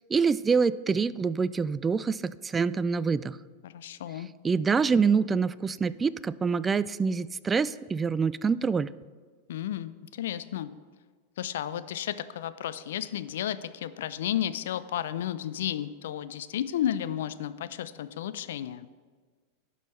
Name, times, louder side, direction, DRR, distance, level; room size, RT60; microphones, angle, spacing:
voice 1, 0.1-3.4 4.4-8.9, right 5 dB, 20° right, 17 dB, 0.3 m, -26 dB
voice 2, 3.6-4.3 9.5-10.7 11.4-18.9, left 11 dB, 70° left, 14 dB, 0.4 m, -33 dB
15.5 x 5.5 x 3.2 m, 1.5 s
hypercardioid pair, 90°, 0 cm